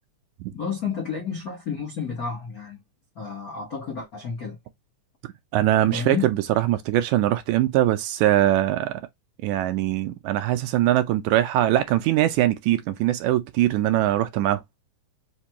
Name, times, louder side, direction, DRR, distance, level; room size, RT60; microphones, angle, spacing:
voice 1, 0.5-2.8 3.1-4.6 5.9-6.3, left 6 dB, 75° left, 0.8 m, -31 dB
voice 2, 5.5-8.9 9.4-14.6, right 13 dB, 80° right, 1.8 m, -22 dB
5.1 x 2.3 x 2.8 m
omnidirectional pair, 3.7 m